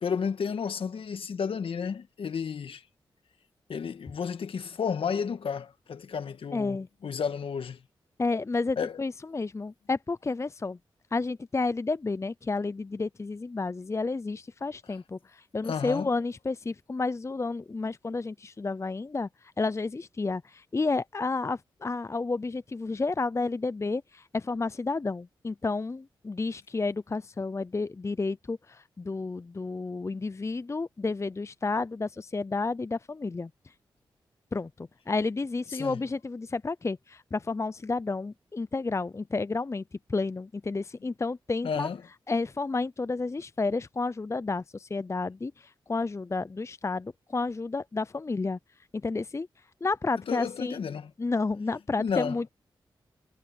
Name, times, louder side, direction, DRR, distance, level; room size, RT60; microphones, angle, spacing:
voice 1, 0.0-2.8 3.7-7.8 8.8-9.0 15.6-16.1 35.7-36.0 41.6-42.0 50.3-51.1 52.0-52.4, left 6 dB, 70° left, 1.8 m, -32 dB
voice 2, 6.5-6.9 8.2-10.8 11.1-33.5 34.5-39.8 40.1-41.9 42.3-48.6 48.9-49.5 49.8-50.8 51.2-52.5, left 3 dB, 30° left, 0.5 m, -31 dB
supercardioid pair, 40°, 9 cm